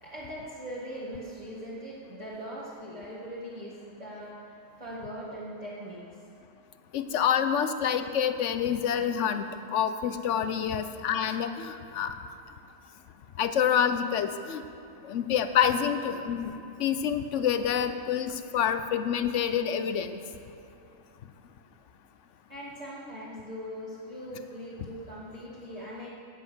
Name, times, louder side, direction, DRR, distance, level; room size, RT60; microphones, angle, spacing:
voice 1, 0.0-4.5 4.8-6.0 22.5-26.1, equal, 30° right, -8 dB, 1.9 m, -40 dB
voice 2, 6.9-9.5 9.7-12.1 13.4-14.6 15.0-20.2, left 8 dB, 65° left, 10 dB, 1.0 m, -27 dB
16.5 x 7.6 x 6.2 m, 2.8 s
omnidirectional pair, 1.4 m